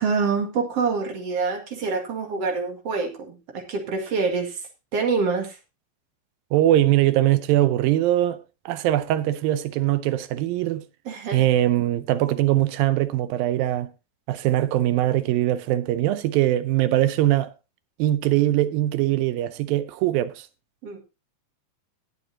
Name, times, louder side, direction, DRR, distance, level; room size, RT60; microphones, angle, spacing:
voice 1, 0.0-4.7 4.9-5.6 11.0-11.5 20.8-21.0, right 4 dB, 50° right, 2.6 m, -26 dB
voice 2, 6.5-10.8 11.3-13.9 14.3-17.5 18.0-20.5, right 14 dB, 85° right, 2.5 m, -22 dB
19.0 x 7.0 x 2.8 m
omnidirectional pair, 4.1 m